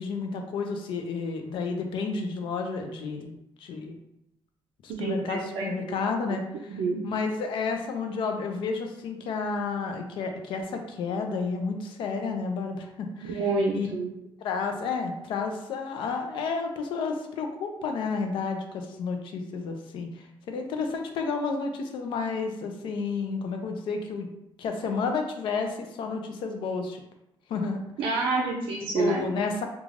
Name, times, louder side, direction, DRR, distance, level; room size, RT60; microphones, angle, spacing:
voice 1, 0.0-3.9 4.8-13.4 13.7-13.9 14.4-24.3 24.6-27.0 27.5-27.8 28.1-28.3 28.9-29.7, left 4 dB, 70° left, 4 dB, 0.4 m, -31 dB
voice 2, 5.0-5.9 6.7-7.0 13.2-14.1 28.0-29.3, right 3 dB, 80° right, -3 dB, 0.4 m, -28 dB
2.4 x 2.2 x 3.2 m, 0.84 s
cardioid pair, 165°, 9 cm